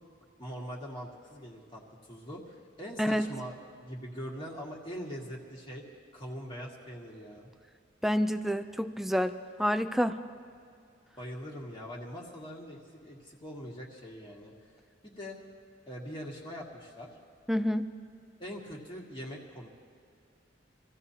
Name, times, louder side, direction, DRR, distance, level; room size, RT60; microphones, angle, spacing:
voice 1, 0.2-3.5 3.8-5.8 6.1-7.5 11.2-14.5 15.0-15.4 15.9-17.2 18.4-19.7, equal, 25° left, -3 dB, 1.9 m, -42 dB
voice 2, 8.0-10.2 17.5-17.9, equal, ahead, 9 dB, 0.4 m, -28 dB
25.5 x 15.5 x 2.9 m, 2.4 s
head